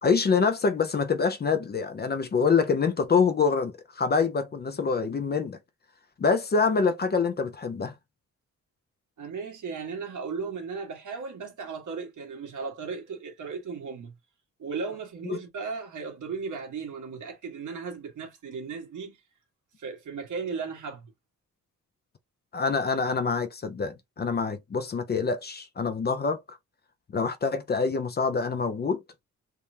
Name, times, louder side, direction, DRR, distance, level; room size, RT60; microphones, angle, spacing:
voice 1, 0.0-5.6 6.2-7.9 15.3-15.4 22.5-26.6 27.1-29.0, left 5 dB, 35° left, 0.5 m, -25 dB
voice 2, 9.2-14.1 14.6-19.2 19.8-21.1, right 5 dB, 75° right, 1.5 m, -36 dB
3.4 x 3.2 x 2.7 m
wide cardioid pair, 175°, 31 cm